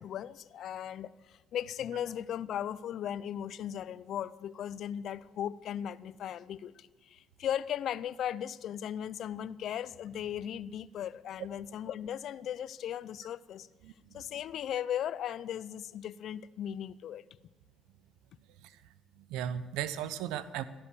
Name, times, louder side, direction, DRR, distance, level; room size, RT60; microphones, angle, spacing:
voice 1, 0.0-13.7 14.1-17.2, left 10 dB, 65° left, 18 dB, 0.5 m, -37 dB
voice 2, 13.8-14.2 18.6-18.8 19.2-20.6, right 10 dB, 85° right, 15 dB, 0.8 m, -37 dB
14.5 x 11.0 x 6.9 m, 1.2 s
supercardioid pair, 70°, 0 cm